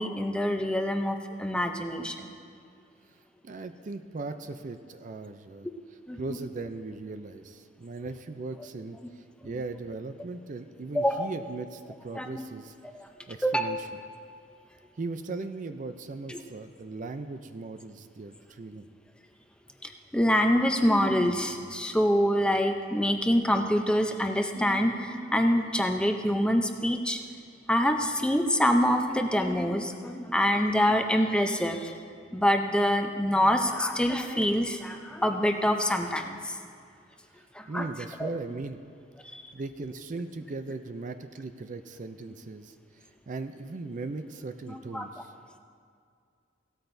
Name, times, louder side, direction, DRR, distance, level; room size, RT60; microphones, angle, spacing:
voice 1, 0.0-2.3 6.1-6.2 10.9-11.3 12.1-12.4 12.9-13.1 13.4-13.7 16.3-16.4 19.8-27.2 27.7-32.0 32.3-36.6 37.5-37.9 38.2-38.3 39.3-39.4 44.7-45.1, equal, 5° left, 4 dB, 0.6 m, -26 dB
voice 2, 3.4-5.7 6.2-12.7 13.3-13.9 15.0-18.9 37.7-38.8 39.5-45.3, right 3 dB, 45° right, 8 dB, 0.4 m, -38 dB
17.0 x 13.0 x 2.7 m, 2.2 s
head